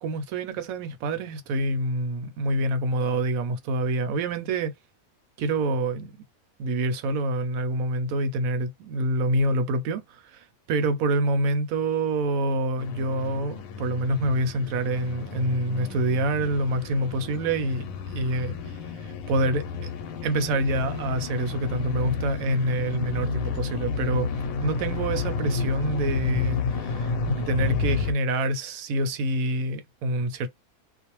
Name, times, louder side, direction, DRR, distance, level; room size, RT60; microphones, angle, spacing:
voice 1, 0.0-4.7 5.4-6.1 6.6-18.6 19.0-19.9 20.2-24.3 24.6-30.5, right 1 dB, 80° right, 1.0 m, -26 dB
sound 1, 12.8-28.1, left 4 dB, 75° left, 1.0 m, -31 dB
Wind instrument woodwind instrument, 15.0-19.4, right 12 dB, ahead, 0.7 m, -53 dB
2.5 x 2.1 x 2.9 m
omnidirectional pair, 1.5 m